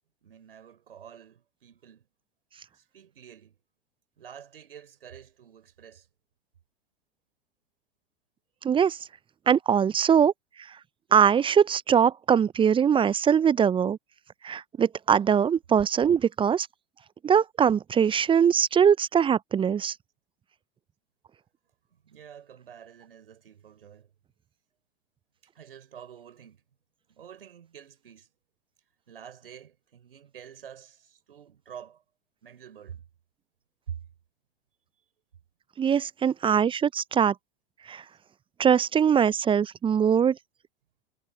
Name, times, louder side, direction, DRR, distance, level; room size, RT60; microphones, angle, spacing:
voice 1, 0.2-2.1 2.7-3.6 4.2-6.1 21.9-24.1 25.5-26.6 27.1-28.3 29.1-32.0 32.4-33.0 33.9-34.0, right 8 dB, 75° right, 6.7 m, -47 dB
voice 2, 8.6-9.0 9.5-10.3 11.1-14.0 14.4-16.7 17.2-19.9 35.8-37.3 37.9-38.0 38.6-40.4, right 7 dB, 20° right, 0.6 m, -22 dB
figure-of-eight pair, 85°, 29 cm